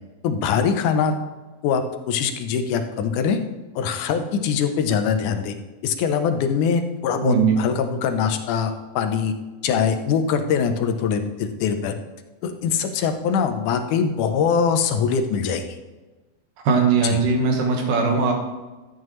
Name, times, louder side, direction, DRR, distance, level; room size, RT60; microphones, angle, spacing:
voice 1, 0.2-1.2 1.6-3.4 3.8-5.5 5.8-9.3 9.6-11.9 12.4-15.7 17.0-17.2, left 6 dB, 80° left, 7 dB, 2.3 m, -22 dB
voice 2, 7.2-7.6 16.6-18.3, right 4 dB, 75° right, 2 dB, 3.0 m, -19 dB
12.5 x 9.2 x 3.2 m, 1.2 s
omnidirectional pair, 3.6 m